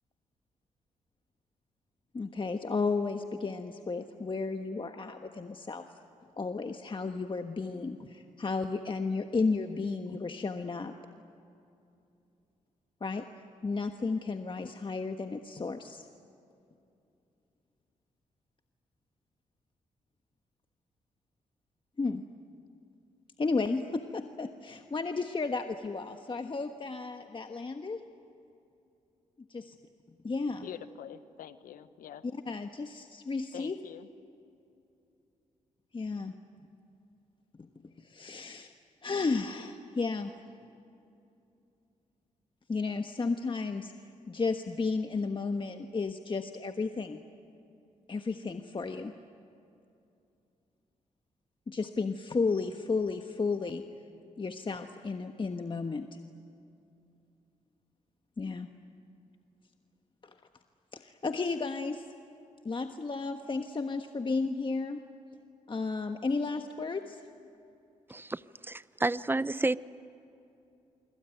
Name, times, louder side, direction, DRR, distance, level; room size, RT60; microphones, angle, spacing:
voice 1, 2.1-5.9 6.4-10.9 13.0-13.2 13.6-16.0 22.0-22.2 23.4-28.0 29.5-29.8 30.2-30.7 32.3-33.8 35.9-36.3 37.6-37.7 38.0-38.7 39.0-40.3 42.7-43.9 44.3-47.2 48.1-49.1 51.7-53.8 54.4-56.2 58.4-58.7 60.2-60.3 60.9-62.0 62.6-65.0 65.7-67.2, left 4 dB, 35° left, 1.3 m, -33 dB
voice 2, 30.6-32.2 33.5-34.1, left 10 dB, 80° left, 1.0 m, -45 dB
voice 3, 68.1-69.8, right 2 dB, 15° right, 0.7 m, -30 dB
25.5 x 25.0 x 9.2 m
supercardioid pair, 50°, 14 cm